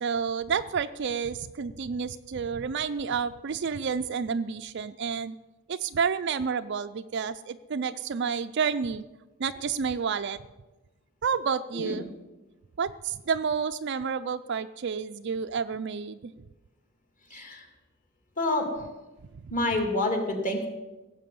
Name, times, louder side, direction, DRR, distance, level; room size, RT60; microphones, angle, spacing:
voice 1, 0.0-5.4 5.7-9.0 9.4-10.4 11.2-12.1 12.8-16.3 17.3-17.4 19.4-19.5, right 6 dB, 50° right, 9 dB, 0.4 m, -30 dB
voice 2, 18.4-18.7 19.5-20.7, left 2 dB, 35° left, 3 dB, 2.5 m, -27 dB
17.0 x 7.5 x 7.7 m, 1.1 s
head